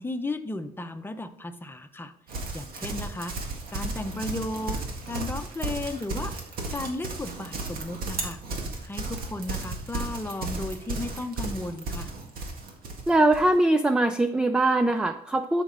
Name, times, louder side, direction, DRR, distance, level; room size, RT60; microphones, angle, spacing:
voice 1, 0.0-2.1 2.5-6.3 6.7-8.4 8.8-12.1, left 2 dB, 15° left, 7 dB, 0.8 m, -34 dB
Livestock farm animals working animals, 2.3-13.5, right 3 dB, 60° right, 1.9 m, -34 dB
voice 2, 13.1-15.6, right 2 dB, 5° right, 10 dB, 0.4 m, -22 dB
12.5 x 5.3 x 3.9 m, 0.67 s
cardioid pair, 110°, 17 cm